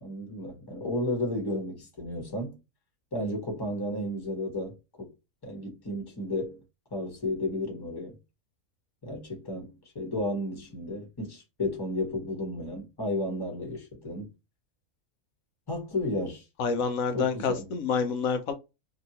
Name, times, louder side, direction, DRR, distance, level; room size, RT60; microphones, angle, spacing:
voice 1, 0.0-2.6 3.1-5.1 5.4-6.6 6.9-8.2 9.0-14.3 15.7-16.4 17.1-17.7, left 1 dB, 20° left, 1.0 m, -33 dB
voice 2, 16.6-18.5, left 5 dB, 80° left, 1.0 m, -28 dB
2.7 x 2.6 x 2.7 m
omnidirectional pair, 1.5 m